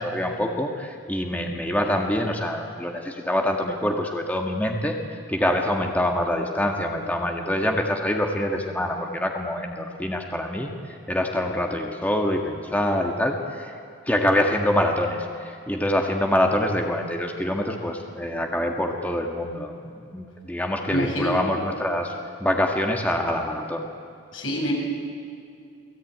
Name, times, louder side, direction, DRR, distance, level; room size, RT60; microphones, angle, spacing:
voice 1, 0.0-10.7 11.1-13.7 14.1-22.1 22.4-23.9, left 1 dB, 10° left, 2 dB, 1.7 m, -25 dB
voice 2, 20.9-21.4 24.3-24.7, equal, 85° left, 0 dB, 7.2 m, -26 dB
28.5 x 19.5 x 9.3 m, 2.4 s
head